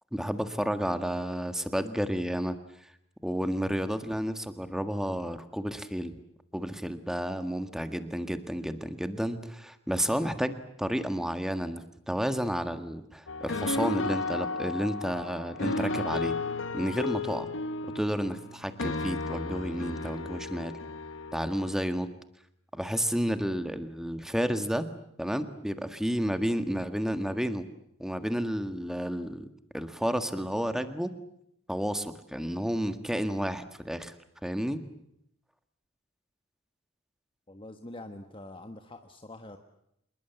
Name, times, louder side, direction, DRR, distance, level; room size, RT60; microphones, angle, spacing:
voice 1, 0.1-2.6 2.8-2.9 3.2-6.1 6.5-16.3 16.7-17.5 17.9-20.7 21.3-22.1 22.7-24.9 25.2-27.6 28.0-29.5 29.7-31.1 31.7-34.1 34.4-34.8, equal, ahead, 9 dB, 1.7 m, -31 dB
sound 1, 13.3-21.9, left 3 dB, 70° left, 1.5 m, -34 dB
voice 2, 37.5-39.6, left 2 dB, 25° left, 6 dB, 1.4 m, -45 dB
26.5 x 21.0 x 8.3 m, 0.77 s
head